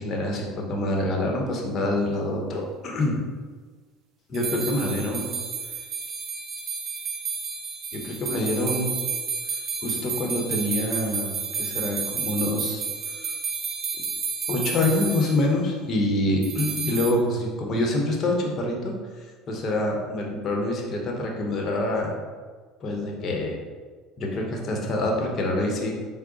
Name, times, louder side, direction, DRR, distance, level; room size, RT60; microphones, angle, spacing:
voice 1, 0.0-3.2 4.3-5.3 7.9-8.9 9.8-12.9 14.5-18.9 19.5-22.1 22.8-23.6 24.2-25.9, left 1 dB, 45° left, 0 dB, 0.9 m, -26 dB
sound 1, 4.3-15.4 16.4-17.1, right 5 dB, 45° right, 0.6 m, -31 dB
4.6 x 2.1 x 3.9 m, 1.5 s
supercardioid pair, 95°, 0 cm